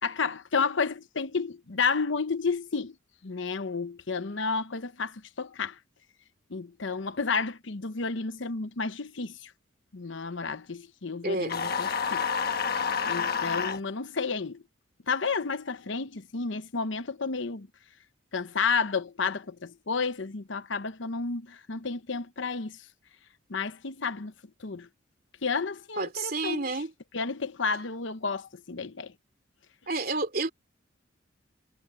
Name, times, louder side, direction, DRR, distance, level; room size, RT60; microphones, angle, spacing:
voice 1, 0.0-2.9 3.2-5.8 6.5-9.5 9.9-12.3 13.1-14.6 15.1-17.7 18.3-22.7 23.5-24.3 24.6-24.9 25.4-26.7 27.1-29.1, left 4 dB, 70° left, 0.9 m, -31 dB
voice 2, 11.2-11.6 26.0-26.9 29.9-30.5, right 3 dB, 50° right, 3.0 m, -30 dB
sound 1, 11.5-13.8, left 6 dB, 50° left, 1.3 m, -29 dB
head